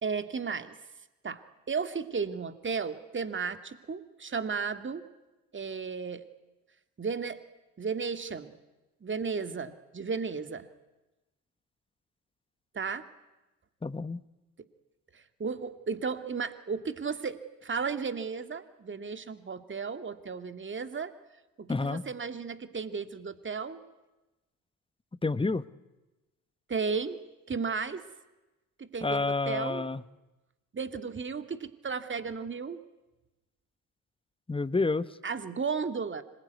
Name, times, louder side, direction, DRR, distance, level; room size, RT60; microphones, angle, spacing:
voice 1, 0.0-0.8 1.2-1.4 1.7-5.1 5.5-6.3 7.0-7.4 7.8-8.5 9.0-10.7 12.7-13.1 15.1-21.1 21.6-23.8 26.7-27.2 27.5-28.0 28.8-29.8 30.7-32.8 35.2-36.2, right 5 dB, 30° right, 10 dB, 2.1 m, -34 dB
voice 2, 13.8-14.2 21.7-22.0 25.2-25.6 29.0-30.0 34.5-35.1, left 3 dB, 15° left, 16 dB, 1.0 m, -29 dB
26.0 x 21.0 x 9.5 m, 1.1 s
hypercardioid pair, 55°, 41 cm